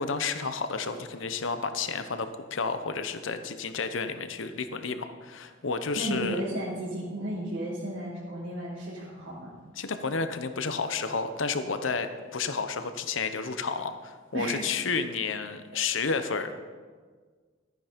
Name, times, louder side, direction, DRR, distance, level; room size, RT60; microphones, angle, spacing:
voice 1, 0.0-6.4 9.8-16.6, left 4 dB, 80° left, 9 dB, 0.9 m, -31 dB
voice 2, 5.9-9.5 14.3-14.8, right 1 dB, 80° right, -8 dB, 2.9 m, -33 dB
13.5 x 9.3 x 5.2 m, 1.5 s
head